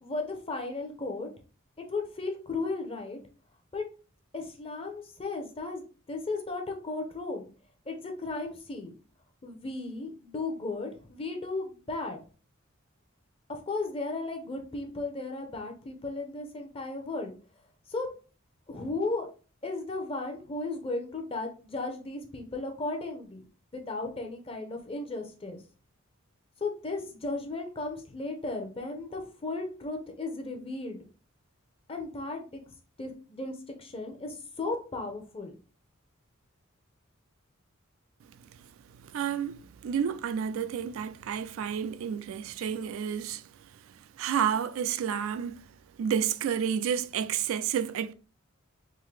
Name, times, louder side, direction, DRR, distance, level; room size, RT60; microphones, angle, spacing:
voice 1, 0.0-1.3 1.8-3.2 3.7-3.8 4.3-7.5 7.9-8.9 9.4-12.2 13.5-17.3 17.9-18.1 18.7-19.3 19.6-23.4 23.7-25.6 26.6-31.0 31.9-32.6 33.0-35.6, left 3 dB, 25° left, 0.7 m, -35 dB
voice 2, 39.0-43.5 44.2-45.6 46.0-48.1, right 8 dB, 75° right, 0.3 m, -30 dB
3.7 x 2.7 x 3.2 m
head